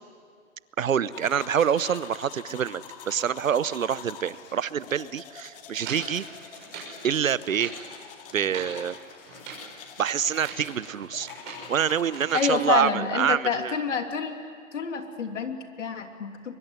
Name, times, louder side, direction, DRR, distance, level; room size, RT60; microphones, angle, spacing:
voice 1, 0.8-2.8 3.1-6.2 7.0-7.7 8.3-9.0 10.0-11.3 11.7-13.7, right 8 dB, 80° right, 18 dB, 0.9 m, -26 dB
sound 1, 1.0-13.0, left 7 dB, 45° left, 2.2 m, -45 dB
sound 2, 5.8-7.0 7.4-7.8 8.3-8.8 9.3-9.7 10.2-10.7 11.0-11.7 12.1-12.5, right 5 dB, 30° right, 6.6 m, -40 dB
voice 2, 12.3-14.4 14.7-16.6, left 6 dB, 65° left, 5 dB, 3.0 m, -28 dB
23.0 x 22.5 x 9.5 m, 2.3 s
hypercardioid pair, 140°, 39 cm